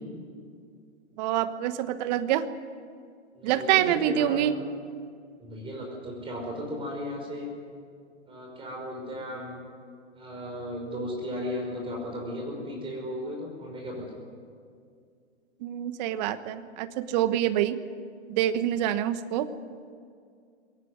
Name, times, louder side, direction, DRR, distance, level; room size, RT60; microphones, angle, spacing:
voice 1, 1.2-2.5 3.4-4.6 15.6-17.8 18.3-19.5, right 12 dB, 35° right, 12 dB, 1.2 m, -26 dB
voice 2, 3.3-4.5 5.4-7.5 8.3-9.6 10.1-14.0, equal, 15° right, 0 dB, 5.6 m, -35 dB
21.5 x 17.5 x 9.5 m, 2.3 s
figure-of-eight pair, 120°, 36 cm